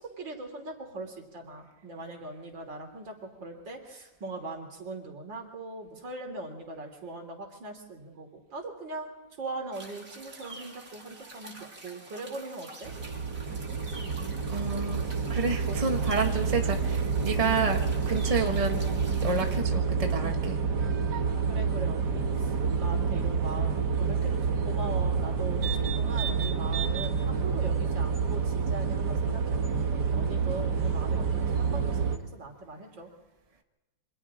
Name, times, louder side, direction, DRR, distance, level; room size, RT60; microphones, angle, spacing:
voice 1, 0.0-9.1 9.4-12.9 21.5-22.5 22.8-29.6 29.9-33.1, right 2 dB, 85° right, 3 dB, 4.0 m, -40 dB
sound 1, 9.7-19.6, right 2 dB, 45° right, 3.4 m, -47 dB
sound 2, 12.8-32.2, right 5 dB, 65° right, 2.0 m, -28 dB
voice 2, 14.5-17.8 18.0-18.8 19.2-20.6, right 4 dB, 20° right, 3 dB, 1.6 m, -29 dB
29.0 x 25.0 x 3.8 m, 1.1 s
omnidirectional pair, 2.0 m